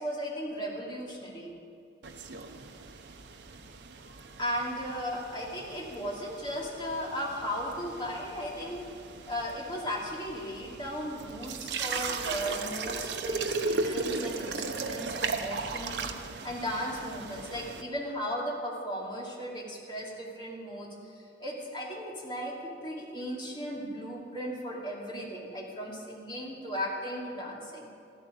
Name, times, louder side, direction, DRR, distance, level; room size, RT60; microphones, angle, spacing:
voice 1, 0.0-1.5 4.4-8.9 9.2-16.1 16.4-27.9, equal, 25° left, -4 dB, 2.8 m, -36 dB
sound 1, 2.0-17.8, right 4 dB, 70° right, 0.9 m, -37 dB
14.0 x 13.0 x 6.4 m, 2.3 s
head